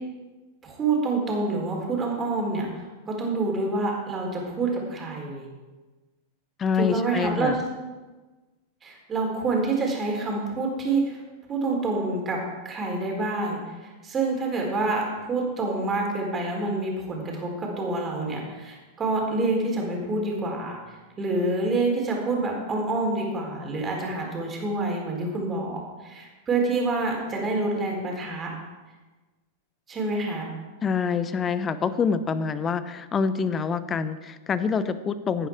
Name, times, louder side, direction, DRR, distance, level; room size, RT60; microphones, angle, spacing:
voice 1, 0.6-2.7 3.1-5.5 6.8-7.6 8.8-11.2 11.5-12.4 12.6-28.5 29.9-30.5, right 3 dB, 20° right, 0 dB, 4.2 m, -27 dB
voice 2, 6.6-7.6 30.8-35.5, left 6 dB, 25° left, 13 dB, 0.9 m, -26 dB
16.0 x 9.9 x 4.8 m, 1.2 s
figure-of-eight pair, 90°, 0 cm